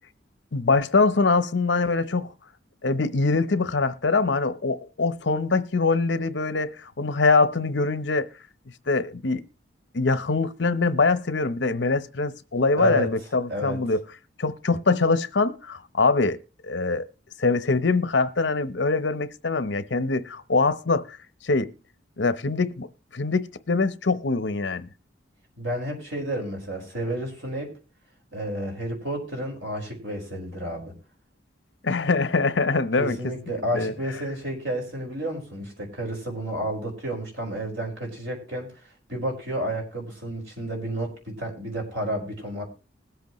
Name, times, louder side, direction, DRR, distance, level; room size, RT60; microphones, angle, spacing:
voice 1, 0.5-2.3 2.8-8.3 8.9-9.4 9.9-14.0 14.4-16.4 16.6-17.1 17.4-21.2 21.4-21.7 22.2-22.9 23.1-24.9 31.8-33.2 33.7-33.9, left 3 dB, 70° left, 0.8 m, -23 dB
voice 2, 12.8-13.1 13.5-13.8 25.6-27.7 28.3-30.9 33.0-38.7 39.1-42.6, right 1 dB, 90° right, 5.0 m, -31 dB
20.5 x 8.1 x 3.1 m
head